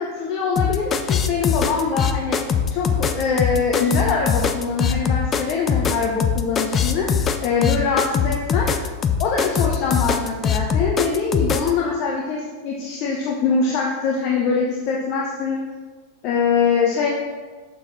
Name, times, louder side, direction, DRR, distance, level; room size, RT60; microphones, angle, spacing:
voice 1, 0.0-2.4 2.7-7.1 7.4-8.7 9.2-15.6 16.2-17.1, left 5 dB, 40° left, -2 dB, 0.9 m, -23 dB
sound 1, 0.6-11.7, left 7 dB, 25° left, 0.5 m, -21 dB
6.7 x 5.9 x 4.2 m, 1.4 s
figure-of-eight pair, 90°, 0 cm